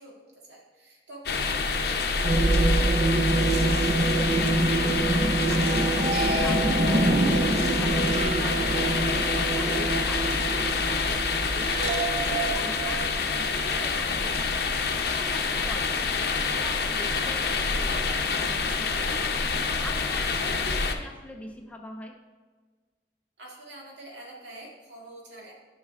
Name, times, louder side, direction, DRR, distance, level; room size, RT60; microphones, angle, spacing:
voice 1, 0.0-3.0 7.3-7.5 15.8-16.0 23.4-25.5, right 1 dB, 80° right, -3 dB, 2.0 m, -47 dB
sound 1, 1.3-21.0, left 4 dB, 60° left, 0.7 m, -27 dB
sound 2, 2.2-14.0, right 2 dB, 35° right, 0.5 m, -26 dB
voice 2, 3.7-9.1 9.5-11.2 11.5-14.7 15.1-16.1 16.4-19.3 19.8-22.2, left 1 dB, 10° left, 2 dB, 0.5 m, -42 dB
10.5 x 5.5 x 3.5 m, 1.4 s
head